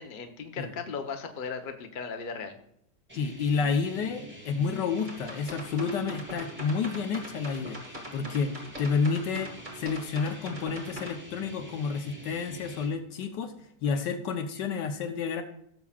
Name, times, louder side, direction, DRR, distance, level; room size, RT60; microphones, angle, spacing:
voice 1, 0.0-2.5 13.8-14.1, left 5 dB, 40° left, 5 dB, 0.7 m, -37 dB
voice 2, 3.1-7.8 8.1-13.5 13.8-15.4, left 5 dB, 80° left, 7 dB, 1.5 m, -30 dB
sound 1, 3.1-12.9, right 1 dB, 5° right, 2.0 m, -47 dB
sound 2, 5.0-11.1, equal, 25° right, 2.2 m, -42 dB
16.5 x 7.1 x 2.4 m, 0.72 s
omnidirectional pair, 1.9 m